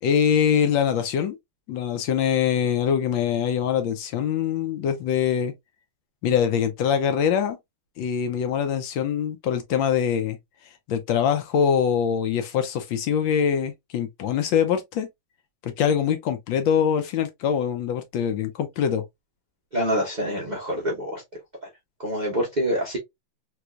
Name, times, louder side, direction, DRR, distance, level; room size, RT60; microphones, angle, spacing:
voice 1, 0.0-1.4 1.7-5.5 6.2-7.6 8.0-10.4 10.9-15.1 15.6-19.0, left 8 dB, 75° left, 1.2 m, -23 dB
voice 2, 19.7-21.2 21.6-21.7 22.0-23.0, equal, 70° right, 0.4 m, -26 dB
3.4 x 3.0 x 2.3 m
omnidirectional pair, 2.4 m